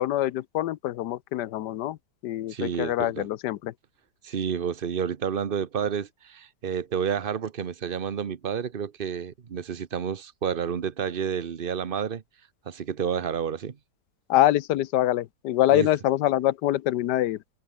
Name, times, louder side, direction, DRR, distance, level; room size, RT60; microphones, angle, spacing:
voice 1, 0.0-2.0 2.2-3.7 14.3-17.4, left 14 dB, 85° left, 1.3 m, -24 dB
voice 2, 2.5-3.3 4.2-12.2 12.7-13.8 15.7-15.9, right 7 dB, 40° right, 1.1 m, -30 dB
omnidirectional pair, 1.8 m